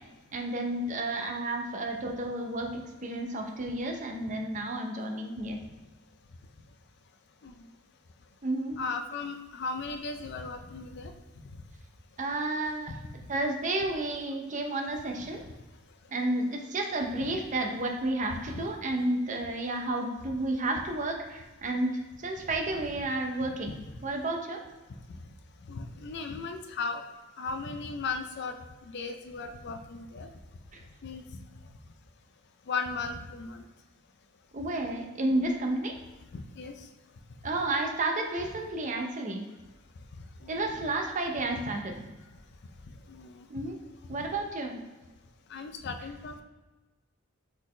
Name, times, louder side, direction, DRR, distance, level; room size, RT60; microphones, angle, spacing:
voice 1, 0.3-2.7 3.0-5.6 8.4-8.8 12.2-12.9 13.3-15.4 16.1-21.9 22.2-23.7 24.0-24.6 34.5-35.9 37.4-39.4 40.5-41.9 43.5-43.8 44.1-44.8, right 2 dB, 40° right, 3 dB, 0.6 m, -31 dB
voice 2, 8.7-11.1 12.9-13.0 18.5-18.7 22.4-22.5 23.4-23.7 25.6-27.0 27.4-28.6 28.8-30.3 31.0-31.2 32.7-33.6 36.3-36.7 40.4-40.8 41.6-41.9 43.1-43.5 45.5-46.4, left 4 dB, 55° left, 6 dB, 0.4 m, -37 dB
4.0 x 3.9 x 3.2 m, 1.1 s
head